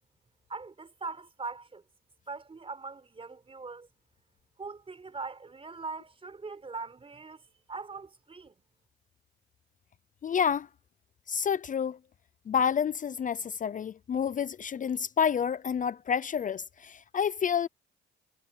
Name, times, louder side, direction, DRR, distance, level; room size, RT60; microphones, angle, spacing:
voice 1, 0.5-1.8 2.3-3.9 4.6-8.5, right 4 dB, 30° right, 4.2 m, -41 dB
voice 2, 10.2-10.7 11.3-12.0 12.5-17.7, left 7 dB, 40° left, 0.6 m, -29 dB
cardioid pair, 90°, 20 cm